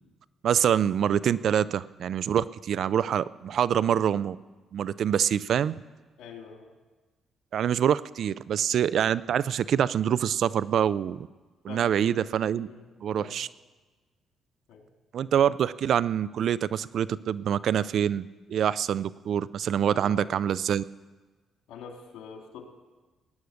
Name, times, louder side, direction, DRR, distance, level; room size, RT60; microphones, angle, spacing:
voice 1, 0.4-4.4 4.7-5.7 7.5-11.3 11.6-12.7 13.0-13.5 15.1-20.8, right 9 dB, 65° right, 18 dB, 0.4 m, -25 dB
voice 2, 6.2-6.7 11.7-12.3 12.7-12.9 13.2-13.4 14.7-14.9 19.9-20.4 21.7-22.7, left 6 dB, 90° left, 3 dB, 2.4 m, -45 dB
20.0 x 9.6 x 6.5 m, 1.3 s
cardioid pair, 90°, 0 cm